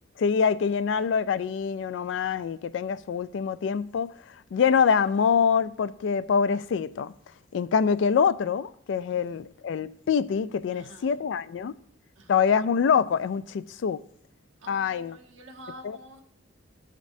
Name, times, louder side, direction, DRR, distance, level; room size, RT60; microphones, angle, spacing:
voice 1, 0.2-4.1 4.5-7.1 7.5-11.8 12.3-14.0 14.7-15.2 15.8-16.0, left 6 dB, 70° left, 0.3 m, -25 dB
voice 2, 9.1-9.5 10.7-11.1 12.2-12.4 14.6-16.2, right 1 dB, 85° right, 1.1 m, -48 dB
13.5 x 5.1 x 2.6 m
head